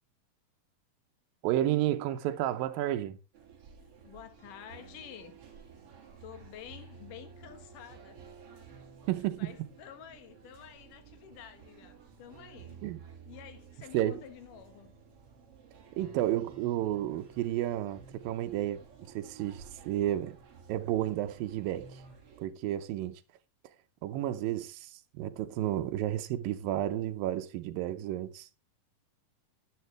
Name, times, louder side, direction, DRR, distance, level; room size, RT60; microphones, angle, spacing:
voice 1, 1.4-3.2 9.1-9.5 12.8-13.0 13.9-14.2 16.0-20.4 20.7-22.0 22.4-23.2 24.0-28.5, right 13 dB, 85° right, 2.6 m, -32 dB
sound 1, 3.3-22.5, right 6 dB, 45° right, 2.8 m, -53 dB
voice 2, 4.0-5.4 6.2-8.2 9.4-12.8 13.3-14.9, left 9 dB, 70° left, 2.9 m, -50 dB
11.0 x 10.5 x 3.3 m
omnidirectional pair, 4.0 m